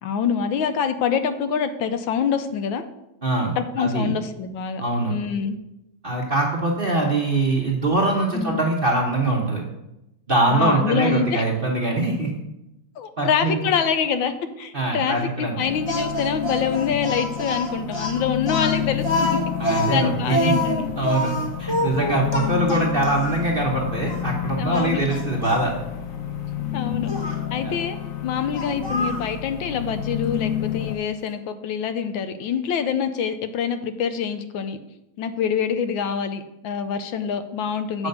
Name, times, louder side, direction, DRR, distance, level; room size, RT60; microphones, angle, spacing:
voice 1, 0.0-2.8 3.6-4.8 5.1-5.6 8.3-8.6 10.5-11.4 13.0-19.4 19.6-20.9 22.6-22.9 24.6-25.1 26.7-34.8 35.2-38.1, left 7 dB, 75° left, 10 dB, 1.3 m, -25 dB
voice 2, 3.2-4.1 4.8-5.1 6.0-9.6 10.3-12.3 13.2-13.6 14.7-15.5 19.6-20.6 21.0-21.3 21.6-25.7 27.6-27.8 38.0-38.1, right 2 dB, 35° right, -1 dB, 0.9 m, -23 dB
sound 1, 15.6-31.0, left 10 dB, 60° left, 0.9 m, -30 dB
Speech, 15.9-23.4 24.1-24.2 24.7-25.7 27.1-27.4 28.5-29.3, left 1 dB, 20° left, 0.9 m, -27 dB
8.2 x 5.2 x 6.6 m, 0.90 s
omnidirectional pair, 2.3 m